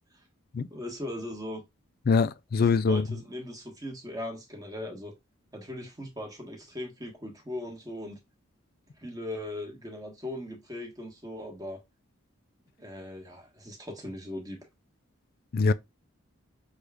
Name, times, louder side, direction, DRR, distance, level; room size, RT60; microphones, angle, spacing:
voice 1, 0.7-1.6 2.6-5.1 5.5-8.2 9.0-11.8 12.8-14.6, left 1 dB, 15° right, 1.2 m, -39 dB
voice 2, 2.1-3.0 15.5-15.7, left 4 dB, 45° left, 0.3 m, -23 dB
6.1 x 2.4 x 3.4 m
head